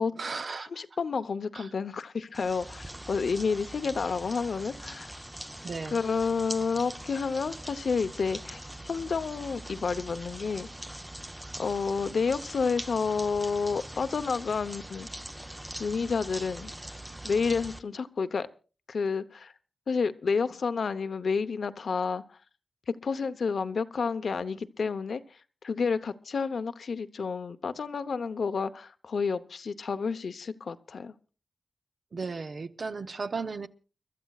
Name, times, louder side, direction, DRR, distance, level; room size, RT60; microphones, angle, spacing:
voice 1, 0.2-0.8 1.5-1.7 5.6-6.0 32.1-33.7, right 4 dB, 55° right, 0.7 m, -35 dB
voice 2, 0.7-5.2 5.9-10.7 11.6-15.1 15.8-16.7 17.2-18.5 18.9-19.5 19.9-22.2 22.9-25.2 25.6-31.1, left 5 dB, 70° left, 0.8 m, -30 dB
sound 1, 2.3-17.8, right 1 dB, 10° right, 0.6 m, -42 dB
30.0 x 13.0 x 2.4 m
wide cardioid pair, 105°, 0 cm